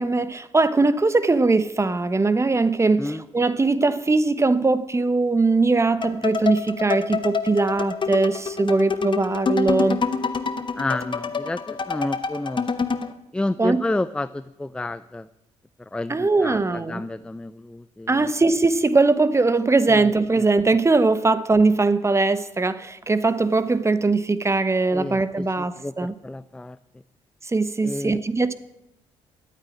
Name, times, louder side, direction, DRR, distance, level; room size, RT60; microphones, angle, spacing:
voice 1, 0.0-10.0 13.6-13.8 16.1-17.0 18.1-26.1 27.4-28.5, right 3 dB, 20° right, 1.1 m, -21 dB
sound 1, 6.0-13.1, left 5 dB, 40° left, 1.2 m, -27 dB
voice 2, 10.8-12.7 13.3-15.3 15.9-18.3 19.9-20.1 20.4-20.5 24.9-26.8 27.8-28.2, left 2 dB, 5° left, 0.5 m, -30 dB
12.0 x 9.0 x 9.9 m
supercardioid pair, 70°, 13 cm